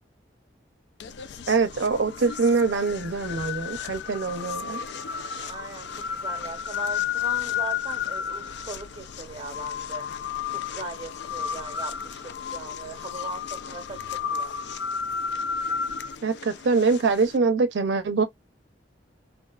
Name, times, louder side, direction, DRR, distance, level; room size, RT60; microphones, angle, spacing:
sound 1, 1.0-17.4, left 7 dB, 65° left, 0.3 m, -33 dB
voice 1, 1.5-4.8 16.2-18.2, right 4 dB, 80° right, 0.5 m, -24 dB
voice 2, 5.5-10.1 10.5-14.5, right 4 dB, 30° right, 0.7 m, -39 dB
2.5 x 2.3 x 2.2 m
head